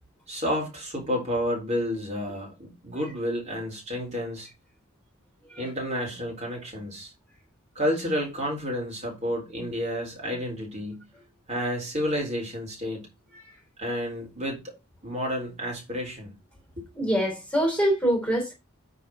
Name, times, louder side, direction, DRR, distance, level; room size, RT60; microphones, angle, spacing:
voice 1, 0.3-4.5 5.6-7.1 7.8-11.0 11.5-13.1 13.8-14.6 15.0-16.3 16.7-16.9, equal, 30° right, 3.9 m, -30 dB
voice 2, 16.9-18.5, equal, 5° left, 3.4 m, -25 dB
9.2 x 4.1 x 5.5 m
head